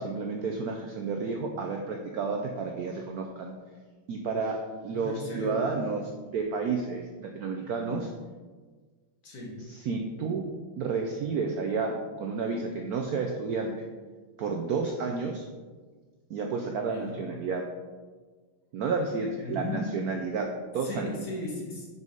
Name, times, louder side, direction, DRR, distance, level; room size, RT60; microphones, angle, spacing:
voice 1, 0.0-3.5 4.1-4.6 4.8-8.1 9.7-10.5 10.8-13.7 14.4-15.4 16.3-17.6 18.7-20.5 20.7-21.1, right 4 dB, 90° right, 2 dB, 0.8 m, -31 dB
voice 2, 4.9-5.6 9.2-9.6 16.9-17.2 19.4-19.8 20.8-21.9, left 2 dB, 50° left, -2 dB, 1.8 m, -36 dB
5.4 x 4.8 x 5.3 m, 1.4 s
omnidirectional pair, 2.3 m